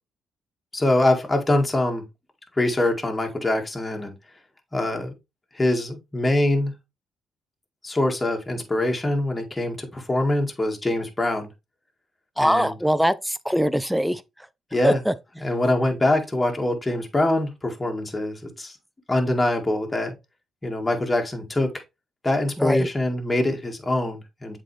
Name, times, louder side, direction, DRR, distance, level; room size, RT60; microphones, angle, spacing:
voice 1, 0.7-2.0 2.6-4.1 4.7-5.1 5.5-6.7 7.8-11.5 12.4-12.7 14.7-15.0 15.4-18.7 19.1-20.1 20.6-21.7 22.2-24.6, left 1 dB, 15° left, 1.9 m, -24 dB
voice 2, 12.4-14.2 14.8-15.1 22.6-22.9, equal, ahead, 0.5 m, -22 dB
7.5 x 4.2 x 3.3 m
cardioid pair, 90°, 0 cm